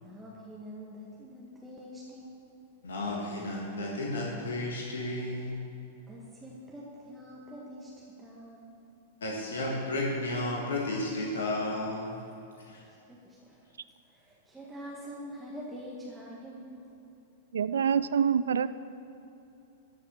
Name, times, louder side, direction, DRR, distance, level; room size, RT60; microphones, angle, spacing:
voice 1, 0.0-2.4 6.1-8.7 12.8-13.7 14.0-16.9, equal, 10° right, -5 dB, 1.9 m, -45 dB
voice 2, 2.8-5.6 9.2-12.2 12.7-12.8, left 1 dB, 75° left, -2 dB, 1.8 m, -33 dB
voice 3, 17.5-18.7, right 7 dB, 70° right, 15 dB, 0.4 m, -26 dB
13.5 x 6.4 x 7.3 m, 2.8 s
figure-of-eight pair, 100°, 0 cm